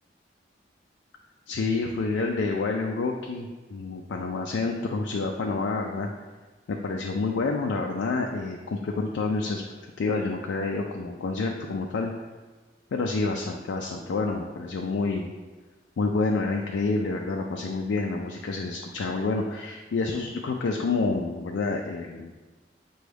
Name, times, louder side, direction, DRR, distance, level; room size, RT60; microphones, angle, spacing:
voice 1, 1.5-6.1 6.7-9.6 10.0-12.1 12.9-15.3 16.0-22.3, left 3 dB, 75° left, 1 dB, 0.3 m, -28 dB
6.1 x 2.3 x 3.3 m, 1.3 s
head